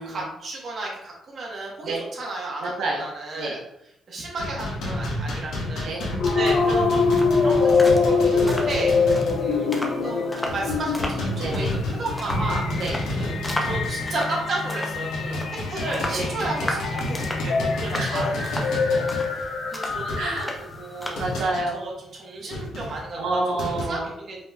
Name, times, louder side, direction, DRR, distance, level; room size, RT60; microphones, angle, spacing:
voice 1, 0.0-3.6 4.1-5.9 6.3-8.9 9.4-12.7 13.2-15.4 15.7-18.5 18.9-19.0 19.3-20.5 20.7-21.2 21.7-23.4 23.9-24.4, right 2 dB, 35° right, -3 dB, 1.0 m, -33 dB
voice 2, 2.6-3.0 3.4-3.6 5.8-6.1 8.9-9.3 11.4-11.7 12.8-13.0 16.1-16.3 17.9-18.6 18.8-19.2 20.2-20.6 21.2-21.8 23.2-24.1, right 2 dB, 75° right, -1 dB, 0.7 m, -29 dB
sound 1, 4.4-9.6 9.9-10.0 10.5-14.4 14.9-21.7 22.5-23.8, left 1 dB, 85° left, 1.2 m, -31 dB
sound 2, 6.2-20.8, left 4 dB, 60° left, 0.5 m, -25 dB
sound 3, 6.5-21.5, left 1 dB, 10° left, 0.5 m, -37 dB
5.3 x 3.6 x 2.2 m, 0.80 s
cardioid pair, 175°, 0 cm